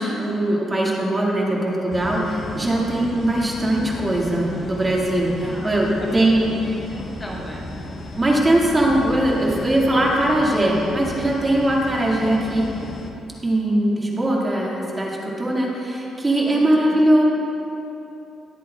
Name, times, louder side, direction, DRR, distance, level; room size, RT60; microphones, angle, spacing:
voice 1, 0.0-6.5 8.2-12.7 13.4-17.2, right 1 dB, 20° right, -3 dB, 2.0 m, -20 dB
sound 1, 1.9-13.1, left 2 dB, 50° left, 1.2 m, -34 dB
voice 2, 6.0-7.7 7.9-8.0 16.5-17.0, left 1 dB, 20° left, -2 dB, 1.2 m, -36 dB
19.0 x 8.2 x 2.4 m, 2.9 s
cardioid pair, 90°, 0 cm